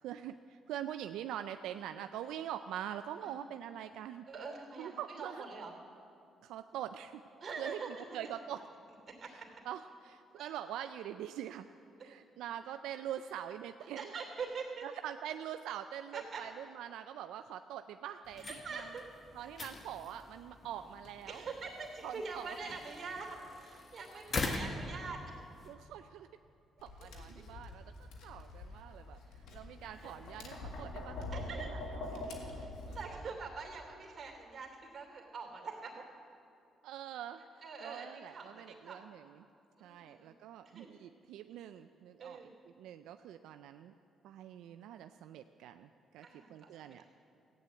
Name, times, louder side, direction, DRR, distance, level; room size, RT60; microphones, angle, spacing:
voice 1, 0.0-4.3 4.8-5.4 6.4-7.2 7.6-8.6 9.6-11.7 12.0-14.1 14.8-18.9 19.3-21.5 22.0-22.8 25.7-26.3 26.8-33.2 36.8-39.5 39.8-42.4 42.8-43.9 44.2-47.0, right 10 dB, 90° right, 9 dB, 0.4 m, -44 dB
voice 2, 4.3-5.7 7.4-7.9 9.2-9.5 10.3-10.5 14.0-14.8 16.1-16.4 18.4-19.0 21.3-25.4 27.3-27.4 30.0-30.1 31.3-31.7 32.5-35.9 37.6-39.1 39.8-40.3 40.6-40.9 42.2-42.5 46.2-47.0, right 4 dB, 45° right, 1 dB, 2.8 m, -44 dB
sound 1, 18.2-25.7, left 3 dB, 40° left, 1.3 m, -43 dB
Tap, 26.8-33.0, left 2 dB, 80° left, 1.8 m, -44 dB
15.0 x 9.1 x 8.2 m, 2.6 s
cardioid pair, 90°, 0 cm